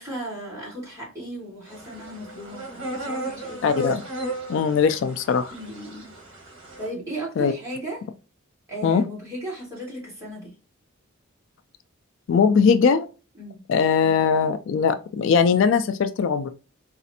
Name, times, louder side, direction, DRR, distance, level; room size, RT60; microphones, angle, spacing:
voice 1, 0.0-3.8 5.5-6.1 6.8-8.0 8.7-10.5 13.4-13.6, right 1 dB, 15° right, 1.9 m, -36 dB
sound 1, 1.7-6.9, right 1 dB, 65° right, 1.2 m, -35 dB
voice 2, 3.6-4.0 4.5-5.5 7.4-7.5 8.8-9.0 12.3-13.1 13.7-16.5, left 6 dB, 65° left, 0.3 m, -20 dB
4.0 x 2.4 x 2.7 m
head